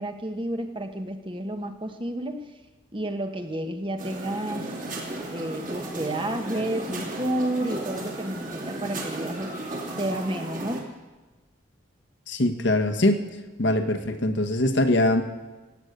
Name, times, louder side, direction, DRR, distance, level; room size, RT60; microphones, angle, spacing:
voice 1, 0.0-2.4 2.9-4.7 5.3-9.5 10.0-10.8, right 1 dB, 25° right, 5 dB, 1.2 m, -31 dB
sound 1, 4.0-10.8, right 2 dB, 40° right, 2.7 m, -34 dB
voice 2, 12.3-13.2 13.6-15.2, left 1 dB, 65° left, 5 dB, 1.4 m, -22 dB
17.0 x 8.2 x 8.1 m, 1.2 s
head